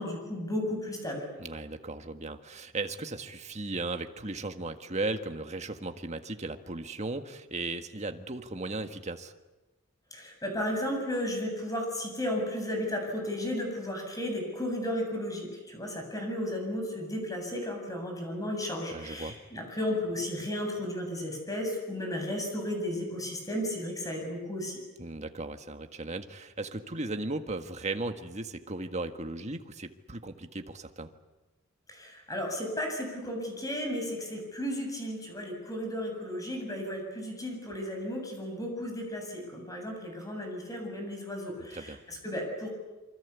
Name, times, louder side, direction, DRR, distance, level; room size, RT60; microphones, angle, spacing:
voice 1, 0.0-1.2 10.1-24.8 31.9-42.7, left 1 dB, 15° left, 3 dB, 7.6 m, -34 dB
voice 2, 1.4-9.3 18.9-19.3 25.0-31.1 41.7-42.0, right 2 dB, 35° right, 7 dB, 1.7 m, -36 dB
27.5 x 25.0 x 8.4 m, 1.1 s
head